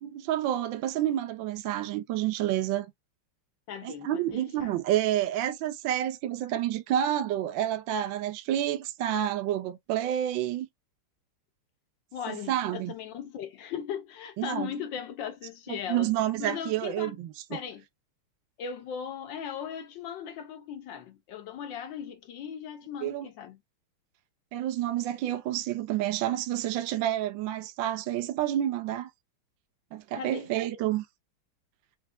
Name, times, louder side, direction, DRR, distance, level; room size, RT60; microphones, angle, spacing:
voice 1, 0.0-2.9 3.8-10.7 12.3-12.9 14.4-14.7 15.7-17.3 23.0-23.3 24.5-29.1 29.9-31.0, right 12 dB, 70° right, 1.2 m, -29 dB
voice 2, 3.7-4.8 12.1-16.1 16.4-17.2 17.5-17.8 18.6-23.6 30.2-30.5, left 8 dB, 65° left, 1.3 m, -38 dB
4.7 x 3.3 x 2.3 m
omnidirectional pair, 2.4 m